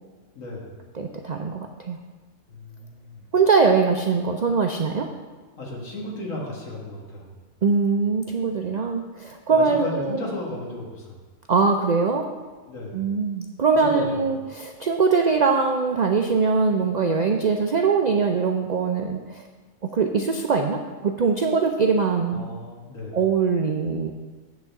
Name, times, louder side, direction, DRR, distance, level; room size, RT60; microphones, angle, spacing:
voice 1, 0.3-0.8 2.5-3.3 5.6-7.4 9.5-11.2 12.7-13.1 13.7-14.4 22.3-23.2, left 1 dB, 70° left, -2 dB, 2.0 m, -35 dB
voice 2, 1.0-2.0 3.3-5.1 7.6-10.2 11.5-12.3 12.9-19.4 19.8-22.6 23.1-24.1, right 4 dB, 60° right, 3 dB, 0.4 m, -22 dB
8.9 x 4.2 x 7.1 m, 1.3 s
omnidirectional pair, 1.4 m